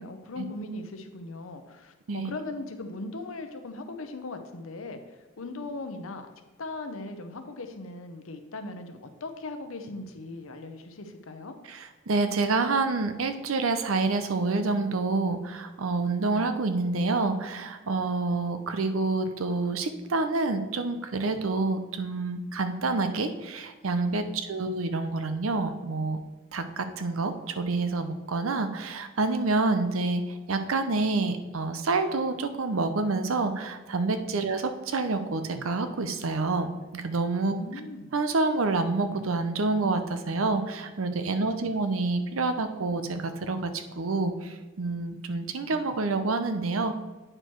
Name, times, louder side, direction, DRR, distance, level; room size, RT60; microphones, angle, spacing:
voice 1, 0.0-6.3 6.6-11.6 24.2-24.7 34.3-34.5 37.4-38.2 41.3-41.8, left 2 dB, 80° left, 7 dB, 0.8 m, -39 dB
voice 2, 12.1-26.2 26.5-36.7 36.9-37.6 38.1-46.9, right 3 dB, 80° right, 9 dB, 0.7 m, -28 dB
8.8 x 4.5 x 4.5 m, 1.2 s
head